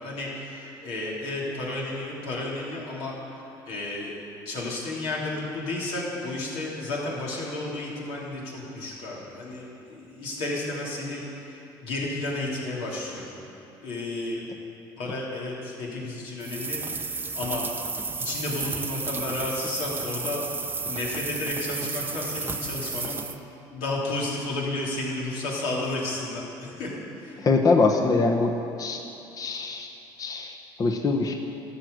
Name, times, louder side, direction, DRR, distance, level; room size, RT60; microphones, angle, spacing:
voice 1, 0.0-4.1 4.4-13.3 13.8-14.4 15.0-16.8 17.1-17.6 18.2-20.4 20.9-23.2 23.7-26.9 27.2-27.5, left 2 dB, 75° left, -4 dB, 3.1 m, -32 dB
sound 1, 16.4-23.4, right 4 dB, 20° right, 0.7 m, -32 dB
voice 2, 27.4-28.5 28.8-29.0 29.4-29.9 30.2-31.4, left 3 dB, 35° left, 3 dB, 1.0 m, -23 dB
13.0 x 6.3 x 8.0 m, 2.9 s
supercardioid pair, 80°, 10 cm